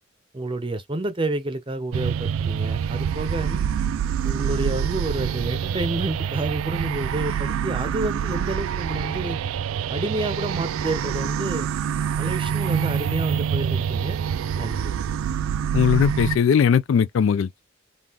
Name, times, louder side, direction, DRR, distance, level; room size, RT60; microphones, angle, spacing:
voice 1, 0.3-3.6 4.2-9.4 9.9-11.7 12.2-14.2 14.6-14.9, right 2 dB, 25° right, 0.6 m, -29 dB
sound 1, 1.9-16.4, right 8 dB, 80° right, 0.3 m, -26 dB
voice 2, 15.7-17.6, left 7 dB, 70° left, 0.3 m, -19 dB
3.7 x 2.4 x 2.9 m
head